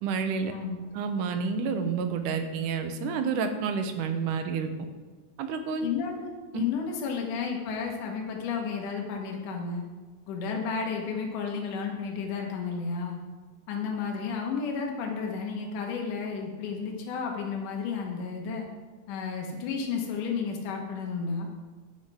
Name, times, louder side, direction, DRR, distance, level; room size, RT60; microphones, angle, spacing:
voice 1, 0.0-0.5 0.9-4.7 5.4-5.9 6.5-6.6, right 5 dB, 80° right, 7 dB, 2.3 m, -29 dB
voice 2, 5.8-6.3 6.5-9.8 10.3-13.2 13.7-18.7 19.1-21.5, left 5 dB, 75° left, 1 dB, 2.8 m, -32 dB
11.0 x 10.5 x 3.6 m, 1.3 s
omnidirectional pair, 3.7 m